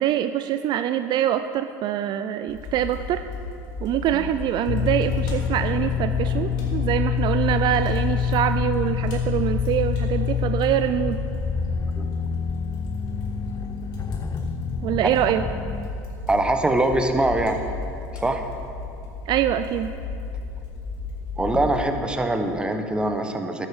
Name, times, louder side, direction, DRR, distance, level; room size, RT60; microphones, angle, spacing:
voice 1, 0.0-3.2 3.8-11.2 14.8-15.4 19.3-19.9, right 11 dB, 50° right, 10 dB, 0.4 m, -24 dB
Fire, 2.5-21.8, left 4 dB, 60° left, 3.0 m, -34 dB
sound 1, 4.7-15.9, left 6 dB, 35° left, 0.8 m, -26 dB
voice 2, 16.3-17.6 18.2-18.4 21.4-23.7, right 1 dB, 10° right, 6 dB, 1.0 m, -23 dB
11.5 x 8.1 x 4.9 m, 2.6 s
hypercardioid pair, 90°, 10 cm